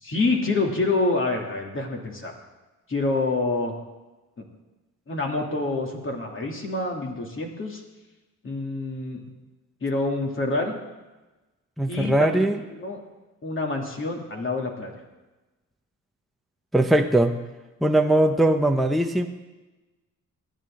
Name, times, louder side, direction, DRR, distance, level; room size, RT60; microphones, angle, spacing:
voice 1, 0.0-2.3 2.9-3.7 4.4-4.5 5.1-7.8 8.4-9.2 9.8-10.8 11.9-13.0 13.4-14.9, left 3 dB, 40° left, 0 dB, 2.7 m, -27 dB
voice 2, 11.8-12.6 16.7-17.3 17.8-19.3, right 1 dB, ahead, 4 dB, 0.8 m, -20 dB
18.0 x 11.0 x 3.8 m, 1.1 s
cardioid pair, 85°, 34 cm